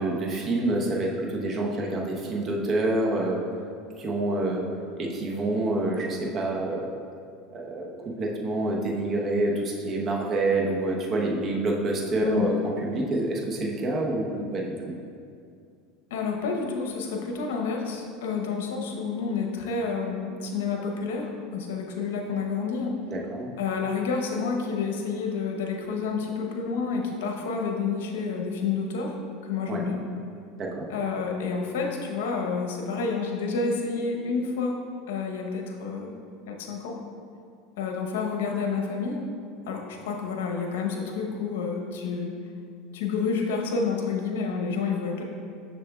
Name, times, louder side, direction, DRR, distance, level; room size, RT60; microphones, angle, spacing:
voice 1, 0.0-3.4 4.0-4.6 5.0-6.8 7.5-7.9 8.2-14.9 23.1-23.5 29.7-29.8 30.6-30.8, right 2 dB, 35° right, -1 dB, 0.9 m, -27 dB
voice 2, 16.1-23.0 23.6-29.2 29.4-30.0 30.9-34.8 35.1-36.1 36.5-37.0 37.8-39.2 39.7-42.3 42.9-45.2, left 5 dB, 90° left, 1 dB, 0.8 m, -29 dB
7.0 x 6.5 x 2.3 m, 2.3 s
supercardioid pair, 125°, 0 cm